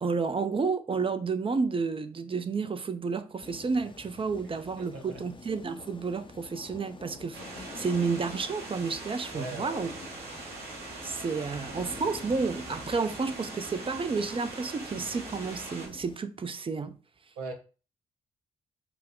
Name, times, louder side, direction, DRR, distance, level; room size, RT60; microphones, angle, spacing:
voice 1, 0.0-9.9 11.0-17.0, right 4 dB, 30° right, 0.6 m, -31 dB
sound 1, 3.4-16.2, left 4 dB, 30° left, 0.7 m, -47 dB
voice 2, 4.8-5.2 9.3-9.9 17.4-17.5, right 2 dB, 80° right, 0.8 m, -39 dB
sound 2, 7.3-15.9, right 3 dB, 60° right, 1.6 m, -42 dB
5.9 x 2.2 x 3.8 m
hypercardioid pair, 40°, 18 cm